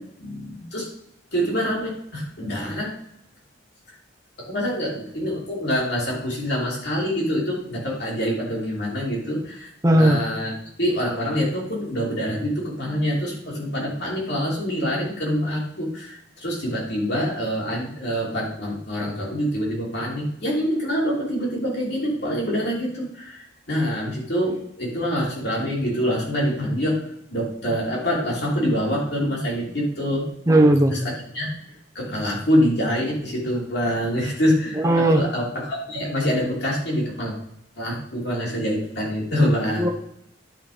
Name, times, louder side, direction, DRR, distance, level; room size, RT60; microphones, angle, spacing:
voice 1, 0.2-0.9 1.3-2.9 4.4-9.7 10.0-10.5 10.8-23.4 23.7-27.0 27.3-30.2 30.9-31.5 31.9-34.8 35.1-37.3 37.8-39.9, equal, 60° left, -3 dB, 3.3 m, -25 dB
voice 2, 9.8-10.2 30.5-31.0 34.7-35.2 39.8-39.9, right 1 dB, 15° right, 2 dB, 1.0 m, -16 dB
10.5 x 4.7 x 5.1 m, 0.74 s
head